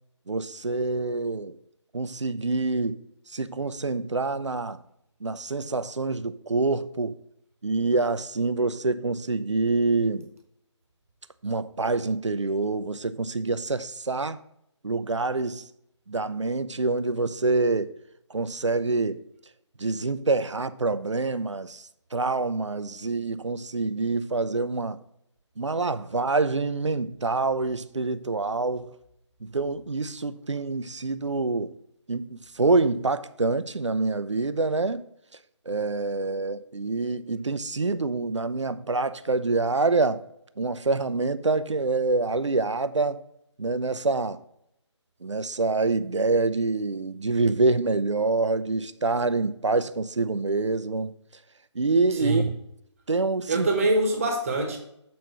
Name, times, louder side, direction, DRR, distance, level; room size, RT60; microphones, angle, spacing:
voice 1, 0.3-1.5 1.9-3.0 3.3-4.8 5.2-7.2 7.6-10.3 11.4-14.4 14.8-15.6 16.1-17.9 18.3-19.2 19.8-25.0 25.6-28.9 29.5-31.7 32.1-35.0 35.7-40.2 40.6-43.2 43.6-44.4 45.2-51.1 51.7-52.4 53.1-53.7, right 3 dB, 75° right, 0.6 m, -26 dB
voice 2, 52.1-52.5 53.5-54.8, right 2 dB, 30° right, 1.1 m, -24 dB
7.7 x 4.2 x 5.7 m
figure-of-eight pair, 150°, 16 cm